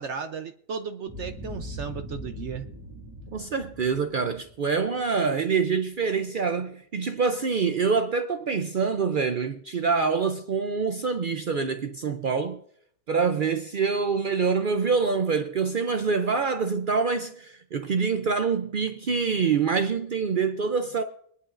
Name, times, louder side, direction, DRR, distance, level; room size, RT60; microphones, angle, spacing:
voice 1, 0.0-2.7, right 6 dB, 60° right, 0.8 m, -35 dB
Boom, 1.1-5.4, equal, 15° right, 2.1 m, -41 dB
voice 2, 3.3-12.6 13.1-21.0, right 5 dB, 80° right, 0.4 m, -25 dB
23.0 x 11.0 x 2.5 m
omnidirectional pair, 1.6 m